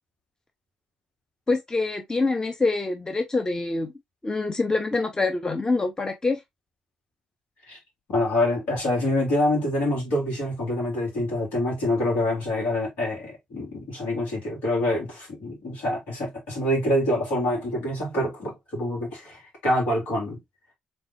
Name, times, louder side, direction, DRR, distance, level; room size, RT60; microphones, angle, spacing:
voice 1, 1.5-3.9 4.2-6.4, left 3 dB, 25° left, 1.0 m, -25 dB
voice 2, 8.1-20.4, left 1 dB, 70° left, 3.4 m, -26 dB
4.5 x 3.9 x 2.8 m
hypercardioid pair, 45°, 3 cm